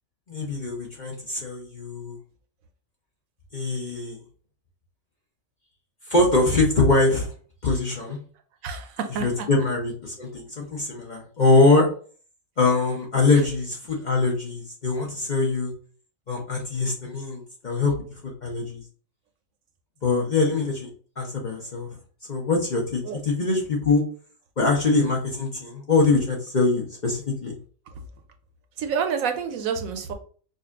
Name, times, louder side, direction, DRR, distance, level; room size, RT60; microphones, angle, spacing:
voice 1, 0.3-2.2 3.5-4.2 6.1-7.3 7.6-8.2 9.2-11.9 12.6-15.7 16.3-17.9 18.2-18.8 20.0-20.9 21.2-21.9 22.3-24.0 24.6-27.5, left 3 dB, 40° left, -1 dB, 0.7 m, -23 dB
voice 2, 8.6-9.5 23.0-23.2 28.8-30.1, right 6 dB, 75° right, 6 dB, 1.0 m, -28 dB
5.1 x 2.4 x 2.4 m, 0.43 s
omnidirectional pair, 1.5 m